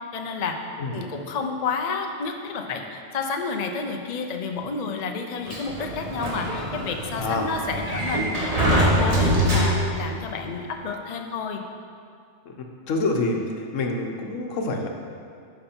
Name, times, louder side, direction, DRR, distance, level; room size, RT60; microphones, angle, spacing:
voice 1, 0.1-0.6 0.9-11.6, left 5 dB, 45° left, 3 dB, 0.6 m, -30 dB
Sliding door, 5.5-10.1, right 1 dB, 30° right, 1.1 m, -24 dB
voice 2, 12.9-13.4 13.7-14.9, left 3 dB, 80° left, 2 dB, 1.2 m, -26 dB
11.0 x 5.5 x 4.4 m, 2.3 s
omnidirectional pair, 1.3 m